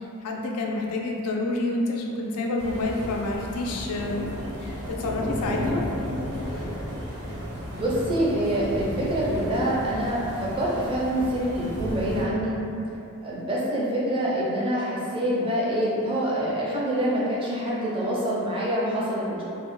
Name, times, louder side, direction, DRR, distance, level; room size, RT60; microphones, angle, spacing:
voice 1, 0.0-4.2 4.6-5.8, left 2 dB, 85° left, 0 dB, 0.3 m, -28 dB
sound 1, 2.6-12.2, equal, 85° right, 0.8 m, -33 dB
voice 2, 7.7-12.5 13.2-19.4, right 1 dB, 25° right, -6 dB, 0.4 m, -26 dB
2.1 x 2.1 x 2.9 m, 2.8 s
head